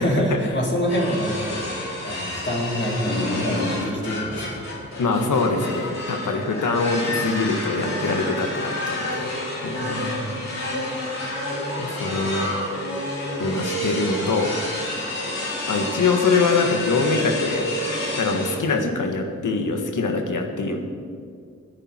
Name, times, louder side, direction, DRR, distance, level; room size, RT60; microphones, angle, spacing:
voice 1, 0.0-4.6 9.8-10.5, equal, 35° left, -4 dB, 4.0 m, -26 dB
sound 1, 0.9-18.5, left 1 dB, 60° left, 4.6 m, -29 dB
voice 2, 5.0-9.3 9.6-10.0 11.8-12.5 13.4-14.5 15.7-17.7 18.2-20.8, left 4 dB, 80° left, 4 dB, 1.7 m, -23 dB
20.5 x 10.0 x 4.5 m, 2.2 s
cardioid pair, 60°, 30 cm